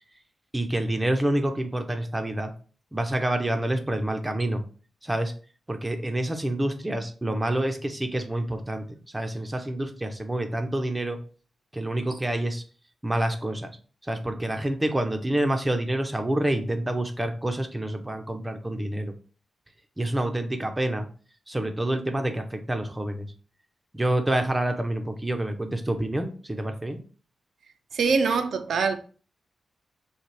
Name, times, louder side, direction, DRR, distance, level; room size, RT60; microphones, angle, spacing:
voice 1, 0.5-2.5 2.9-4.6 5.0-5.3 5.7-11.2 11.7-12.6 13.0-13.7 14.1-19.1 20.0-21.1 21.5-23.3 23.9-27.0, right 1 dB, 15° right, 0.9 m, -27 dB
voice 2, 27.9-29.0, right 5 dB, 80° right, 0.5 m, -23 dB
6.3 x 2.4 x 3.4 m
cardioid pair, 80°, 0 cm